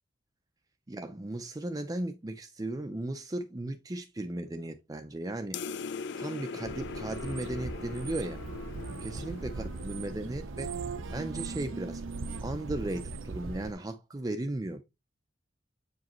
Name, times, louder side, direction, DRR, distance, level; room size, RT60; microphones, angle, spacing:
voice 1, 0.9-5.6 6.1-8.4 9.0-10.7 11.1-12.0 12.4-14.8, right 1 dB, 20° right, 0.5 m, -36 dB
sound 1, 5.5-10.4, left 5 dB, 60° left, 0.4 m, -41 dB
sound 2, 6.7-13.7, right 3 dB, 70° right, 0.6 m, -39 dB
8.3 x 4.9 x 3.0 m
head